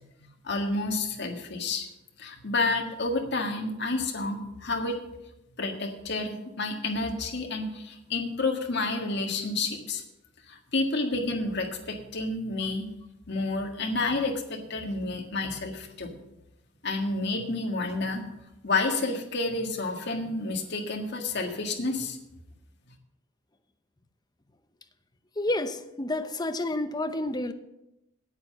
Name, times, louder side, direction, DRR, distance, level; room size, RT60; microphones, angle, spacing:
voice 1, 0.4-1.9 2.2-5.0 5.6-10.0 10.5-12.9 13.3-16.1 16.8-18.3 18.6-22.2, left 3 dB, 60° left, 3 dB, 1.7 m, -30 dB
voice 2, 25.4-27.5, left 1 dB, 20° left, 9 dB, 0.7 m, -29 dB
8.8 x 8.6 x 6.5 m, 0.89 s
head